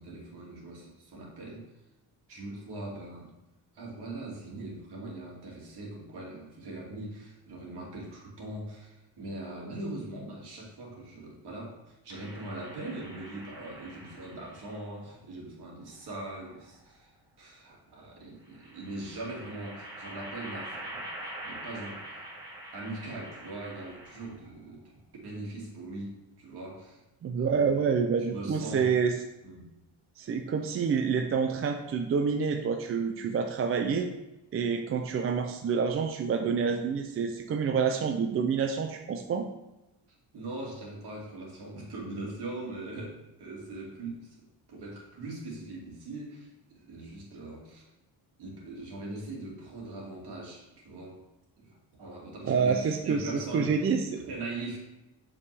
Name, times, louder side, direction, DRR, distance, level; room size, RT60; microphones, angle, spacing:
voice 1, 0.0-1.6 2.3-3.3 3.7-17.1 17.4-21.0 21.4-22.0 22.7-24.8 25.2-27.0 27.4-27.8 28.3-28.9 29.4-29.7 40.3-44.4 44.7-47.8 48.4-51.2 51.6-53.8 54.2-54.8, right 2 dB, 60° right, -3 dB, 2.3 m, -41 dB
sound 1, 12.1-14.7 15.9-16.9 18.5-24.5, right 1 dB, 10° right, 1.4 m, -45 dB
voice 2, 27.2-29.1 30.2-34.1 34.5-39.5 52.4-54.2, right 6 dB, 35° right, 5 dB, 0.4 m, -28 dB
6.8 x 5.3 x 3.3 m, 0.97 s
cardioid pair, 140°, 44 cm